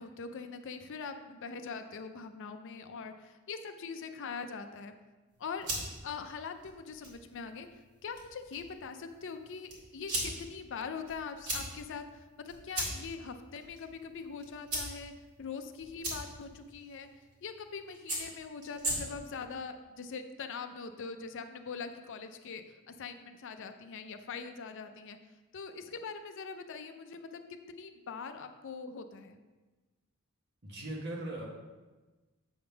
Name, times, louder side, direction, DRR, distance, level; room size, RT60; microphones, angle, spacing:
voice 1, 0.0-4.9 5.4-7.7 8.0-15.1 15.4-17.1 17.4-25.2 25.5-29.4, left 5 dB, 55° left, 8 dB, 0.5 m, -42 dB
sound 1, 5.3-19.4, right 1 dB, 80° right, 2.2 m, -41 dB
voice 2, 30.6-31.5, right 1 dB, 50° right, -2 dB, 1.4 m, -39 dB
7.8 x 3.6 x 5.7 m, 1.2 s
head